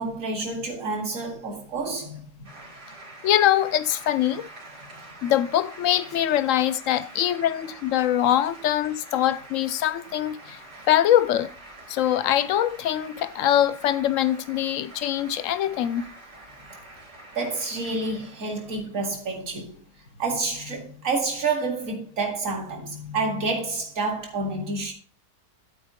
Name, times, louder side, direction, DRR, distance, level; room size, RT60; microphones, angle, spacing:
voice 1, 0.0-2.5 17.3-19.8 20.2-24.9, right 3 dB, 50° right, 2.4 m, -29 dB
sound 1, 2.4-19.0, right 2 dB, 90° right, 3.9 m, -46 dB
voice 2, 3.2-4.5 5.2-10.6 10.9-11.5 11.9-16.0, left 11 dB, 70° left, 0.8 m, -23 dB
12.0 x 4.7 x 5.0 m
omnidirectional pair, 1.8 m